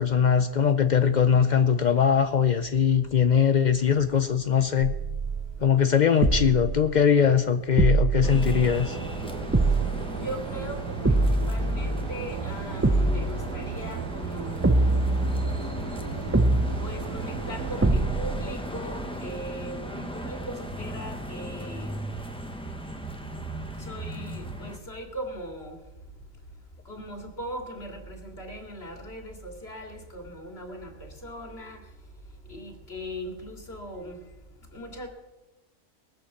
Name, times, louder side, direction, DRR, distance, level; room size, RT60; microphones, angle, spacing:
voice 1, 0.0-4.9 5.6-9.0, left 7 dB, 75° left, 10 dB, 0.4 m, -21 dB
sound 1, 4.8-5.6 6.2-6.8 7.8-8.8 9.5-10.1 11.0-12.1 12.8-13.4 14.6-15.8 16.3-17.0 17.8-18.4, right 2 dB, 20° right, 0.4 m, -24 dB
sound 2, 8.2-24.8, right 1 dB, 5° left, 1.1 m, -36 dB
sound 3, 8.6-17.9, right 8 dB, 90° right, 1.3 m, -37 dB
voice 2, 10.1-15.1 16.8-21.9 23.8-25.8 26.8-31.9 32.5-34.2 34.7-35.1, equal, 40° left, 2 dB, 2.8 m, -39 dB
19.0 x 9.1 x 7.2 m, 1.1 s
omnidirectional pair, 1.6 m